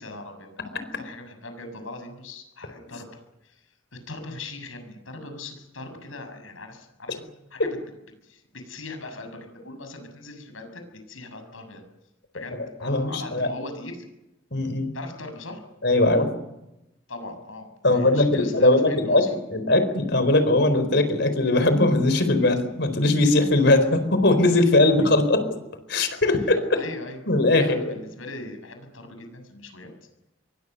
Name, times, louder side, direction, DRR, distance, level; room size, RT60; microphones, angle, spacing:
voice 1, 0.0-3.6 3.9-7.7 8.2-11.8 12.3-14.0 14.9-15.6 17.1-19.3 26.7-27.2 27.6-29.9, left 2 dB, 90° left, 7 dB, 7.0 m, -40 dB
voice 2, 12.8-13.5 14.5-14.9 15.8-16.3 17.8-25.4 25.9-26.8 27.3-28.0, left 2 dB, 60° left, 10 dB, 4.6 m, -20 dB
27.0 x 23.0 x 6.8 m, 0.90 s
head